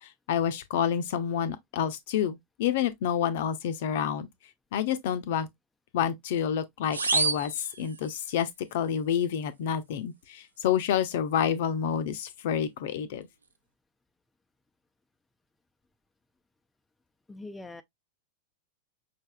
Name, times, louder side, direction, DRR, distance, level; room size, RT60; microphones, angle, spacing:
voice 1, 0.0-4.3 4.7-5.5 5.9-13.3, left 8 dB, 55° left, 0.6 m, -29 dB
sound 1, 6.9-8.5, right 4 dB, 75° right, 0.5 m, -29 dB
voice 2, 17.3-17.8, left 2 dB, 10° left, 0.4 m, -42 dB
5.3 x 3.4 x 2.2 m
figure-of-eight pair, 90°, 0 cm